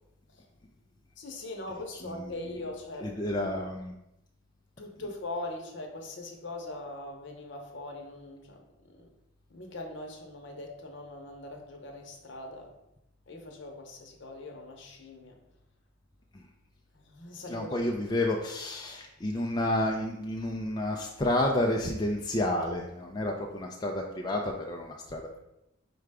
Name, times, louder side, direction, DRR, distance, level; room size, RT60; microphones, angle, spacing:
voice 1, 1.2-3.1 4.8-8.6 8.8-9.1 9.5-12.7 13.3-15.4 16.9-17.9, left 2 dB, 60° left, 1 dB, 0.8 m, -41 dB
voice 2, 2.0-2.3 3.0-3.9 16.3-16.5 17.5-25.4, left 1 dB, 20° left, 0 dB, 0.3 m, -30 dB
4.8 x 2.2 x 4.7 m, 0.85 s
head